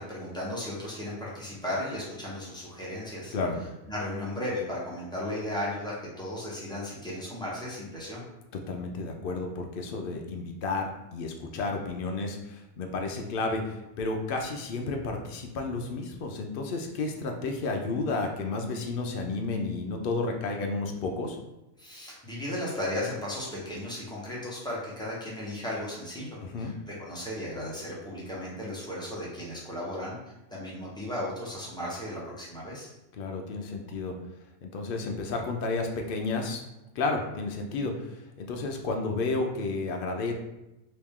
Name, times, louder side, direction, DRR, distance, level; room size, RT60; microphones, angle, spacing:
voice 1, 0.0-3.3 3.9-8.2 21.8-30.2 30.5-32.9, left 1 dB, 5° left, -7 dB, 0.8 m, -35 dB
voice 2, 8.7-21.4 26.4-26.7 33.2-34.2 34.6-36.6 37.0-40.3, left 3 dB, 65° left, 3 dB, 0.5 m, -32 dB
3.1 x 2.8 x 3.6 m, 0.94 s
omnidirectional pair, 1.4 m